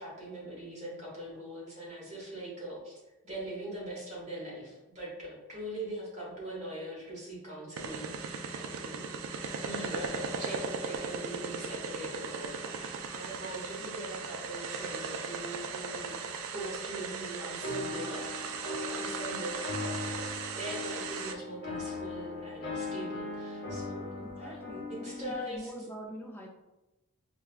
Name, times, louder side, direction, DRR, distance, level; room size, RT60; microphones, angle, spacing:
voice 1, 0.0-2.9 3.2-9.1 9.6-16.1 16.5-20.3 20.5-25.7, right 1 dB, 30° right, -6 dB, 1.1 m, -42 dB
sound 1, 7.8-21.3, right 5 dB, 65° right, 0.3 m, -38 dB
sound 2, 17.6-25.4, left 2 dB, 45° left, 0.9 m, -39 dB
voice 2, 24.2-26.5, equal, 10° left, -1 dB, 0.4 m, -44 dB
4.4 x 2.2 x 2.4 m, 1.0 s
head